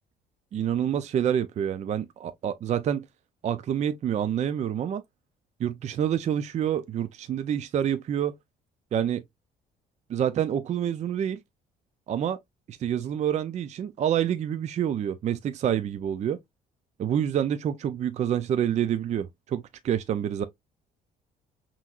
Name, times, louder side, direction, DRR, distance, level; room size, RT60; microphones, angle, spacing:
voice 1, 0.5-3.0 3.4-5.0 5.6-8.3 8.9-9.2 10.1-11.4 12.1-12.4 12.7-16.4 17.0-20.4, right 9 dB, 40° right, 0.5 m, -27 dB
5.7 x 3.1 x 2.4 m
cardioid pair, 110°, 17 cm